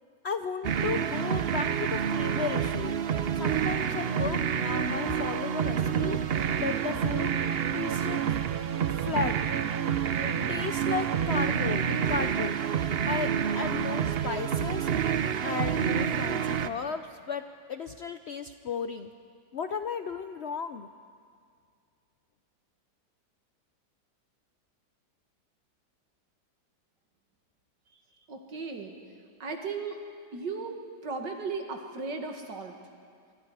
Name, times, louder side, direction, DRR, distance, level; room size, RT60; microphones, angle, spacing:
voice 1, 0.2-3.0 3.3-7.4 7.7-8.2 9.0-9.4 10.2-14.9 15.4-17.4 17.7-19.1 19.5-20.9, left 6 dB, 70° left, 9 dB, 0.6 m, -34 dB
sound 1, 0.6-16.7, right 8 dB, 60° right, 0.6 m, -28 dB
voice 2, 28.3-29.0 29.4-30.0 30.3-32.8, right 4 dB, 90° right, 3 dB, 2.5 m, -36 dB
25.5 x 23.5 x 4.8 m, 2.2 s
omnidirectional pair, 1.8 m